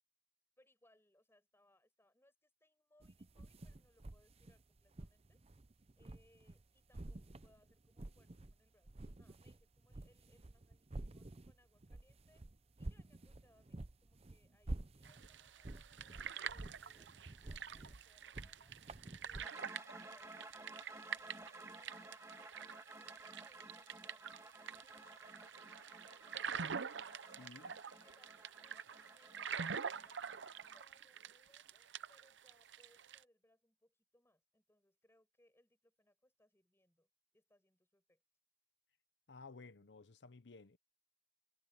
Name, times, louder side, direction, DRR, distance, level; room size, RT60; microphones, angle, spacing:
voice 1, 0.6-5.4 6.0-12.4 12.8-18.7 19.2-26.6 27.9-30.4 30.7-38.2, left 1 dB, 15° left, 6.1 m, -74 dB
sound 1, 3.0-6.6 6.9-8.6 8.8-19.5, right 2 dB, 35° right, 0.7 m, -50 dB
sound 2, 15.0-33.2, right 7 dB, 80° right, 0.7 m, -47 dB
sound 3, 19.4-30.8, right 2 dB, 15° right, 1.7 m, -56 dB
voice 2, 27.4-27.7 39.3-40.8, left 4 dB, 70° left, 0.8 m, -55 dB
head